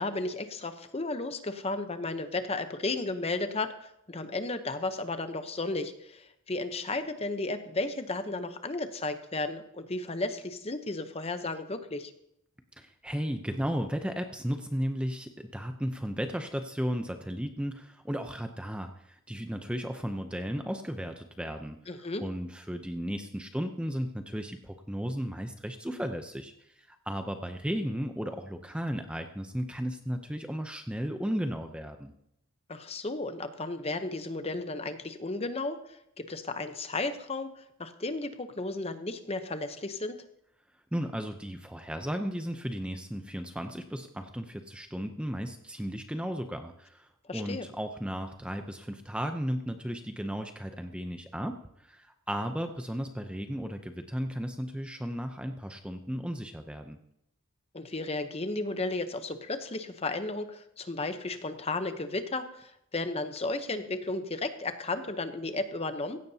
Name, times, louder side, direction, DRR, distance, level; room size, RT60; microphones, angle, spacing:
voice 1, 0.0-12.1 21.9-22.2 32.7-40.2 47.3-47.7 57.7-66.2, left 2 dB, 25° left, 9 dB, 0.8 m, -34 dB
voice 2, 12.8-21.8 22.2-32.1 40.9-57.0, equal, 5° right, 6 dB, 0.6 m, -35 dB
16.0 x 15.0 x 2.8 m, 0.78 s
head